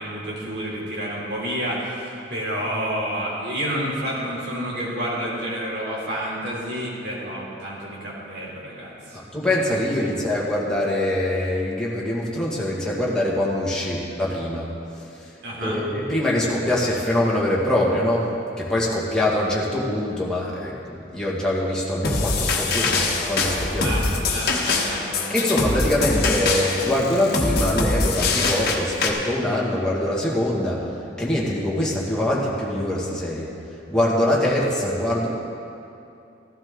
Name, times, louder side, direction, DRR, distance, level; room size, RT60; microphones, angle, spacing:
voice 1, 0.0-9.2 10.0-10.3 15.4-15.8 23.8-25.5, equal, 60° right, -5 dB, 3.2 m, -29 dB
voice 2, 9.3-14.7 15.6-18.3 18.6-23.9 24.2-24.4 25.3-30.8 31.2-33.5 33.9-35.3, left 1 dB, 5° left, -6 dB, 1.9 m, -23 dB
sound 1, 22.0-29.1, left 3 dB, 55° left, 1.3 m, -23 dB
15.0 x 12.5 x 3.7 m, 2.7 s
head